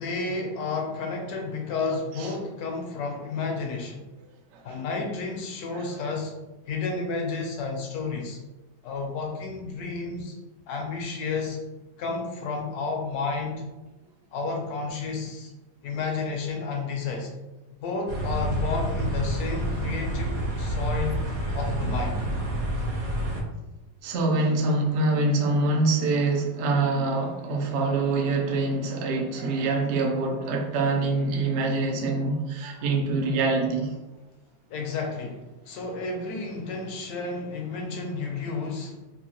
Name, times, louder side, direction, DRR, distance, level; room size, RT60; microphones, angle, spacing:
voice 1, 0.0-4.0 4.6-6.4 6.7-8.4 8.8-10.3 10.7-11.6 12.0-13.7 14.3-15.5 15.8-17.3 17.8-21.3 21.5-22.2 34.7-39.0, left 4 dB, 70° left, 2 dB, 1.1 m, -31 dB
sound 1, 18.1-23.4, right 1 dB, 60° right, 1.1 m, -28 dB
voice 2, 24.0-33.9, right 3 dB, 80° right, 1 dB, 0.6 m, -25 dB
3.8 x 2.5 x 2.9 m, 1.1 s
omnidirectional pair, 1.9 m